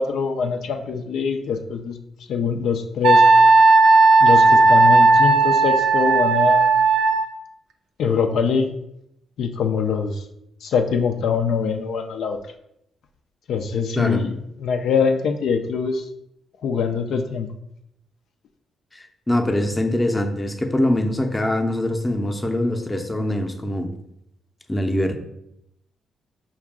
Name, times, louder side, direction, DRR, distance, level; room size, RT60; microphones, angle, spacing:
voice 1, 0.0-2.0 2.3-3.2 4.2-6.8 8.0-8.7 9.4-10.2 10.6-12.4 13.5-16.0 16.6-17.5, left 6 dB, 75° left, 5 dB, 0.3 m, -23 dB
Wind instrument woodwind instrument, 3.0-7.3, right 3 dB, 80° right, 0.4 m, -14 dB
voice 2, 14.0-14.3 18.9-23.9 24.7-25.2, left 1 dB, 15° left, 5 dB, 0.5 m, -23 dB
4.7 x 2.3 x 3.6 m, 0.80 s
supercardioid pair, 65°, 0 cm